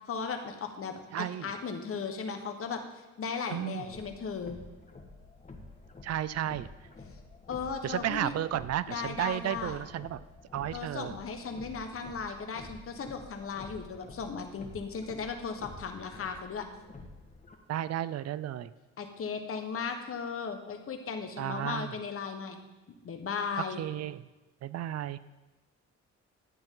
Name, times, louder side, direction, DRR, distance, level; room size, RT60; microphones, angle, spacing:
voice 1, 0.1-2.8 3.2-4.6 7.5-8.3 8.9-9.8 10.7-16.7 19.0-22.6 23.0-23.8, left 5 dB, 45° left, 5 dB, 1.2 m, -36 dB
voice 2, 1.1-1.5 3.5-3.9 6.0-6.7 7.8-10.2 10.5-11.1 17.7-18.7 21.4-21.9 23.8-24.2 24.6-25.2, right 12 dB, 55° right, 16 dB, 0.5 m, -33 dB
sound 1, 3.9-17.5, left 2 dB, 25° left, 1.4 m, -49 dB
12.0 x 8.8 x 3.8 m, 1.1 s
cardioid pair, 90°, 30 cm